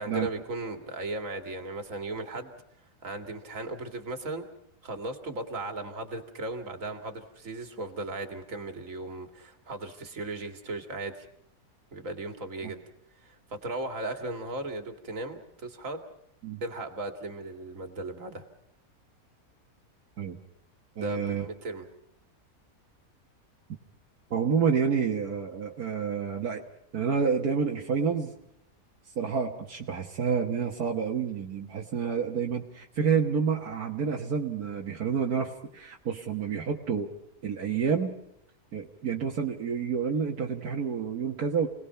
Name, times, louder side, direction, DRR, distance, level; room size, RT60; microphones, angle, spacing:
voice 1, 0.0-2.5 3.0-4.4 4.8-11.3 11.9-12.8 13.2-16.0 16.6-18.4 21.0-21.9, right 2 dB, 60° right, 6 dB, 2.6 m, -36 dB
voice 2, 21.0-21.5 24.3-26.6 26.9-28.3 29.2-37.1 37.4-38.1 38.7-41.7, right 6 dB, 80° right, 1 dB, 2.0 m, -29 dB
29.5 x 19.5 x 5.7 m, 0.77 s
omnidirectional pair, 1.6 m